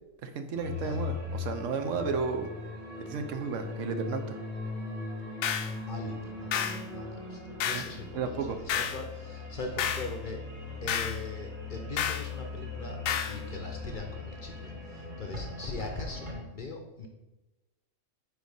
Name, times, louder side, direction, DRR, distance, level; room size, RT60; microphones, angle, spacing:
voice 1, 0.2-2.5 3.1-4.4 7.7-7.8 8.1-8.6, right 5 dB, 75° right, 7 dB, 1.0 m, -33 dB
sound 1, 0.6-16.4, left 3 dB, 35° right, 1.8 m, -39 dB
sound 2, 5.4-5.7 6.5-6.8 7.6-7.9 8.7-9.0 9.8-10.1 10.9-11.2 12.0-12.3 13.1-13.4, left 8 dB, 85° left, 1.0 m, -30 dB
voice 2, 5.9-10.4 10.8-13.0 13.3-17.1, left 3 dB, 50° left, 3 dB, 0.7 m, -41 dB
4.6 x 4.6 x 5.2 m, 1.1 s
omnidirectional pair, 1.4 m